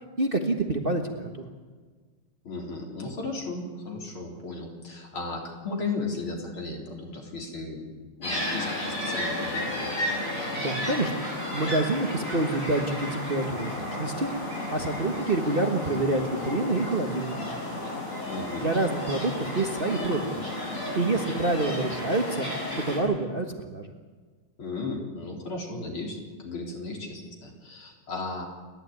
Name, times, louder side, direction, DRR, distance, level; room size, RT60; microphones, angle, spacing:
voice 1, 0.2-1.4 10.3-11.1 11.5-14.3 14.7-17.6 18.6-20.5 20.9-22.5 22.7-23.9, right 2 dB, 30° right, 4 dB, 1.5 m, -27 dB
voice 2, 2.4-7.9 8.2-10.2 18.3-18.7 24.6-28.4, left 3 dB, 75° left, 1 dB, 4.7 m, -35 dB
sound 1, 8.2-23.0, left 1 dB, 35° left, 7.3 m, -32 dB
29.0 x 12.0 x 9.6 m, 1.4 s
omnidirectional pair, 2.3 m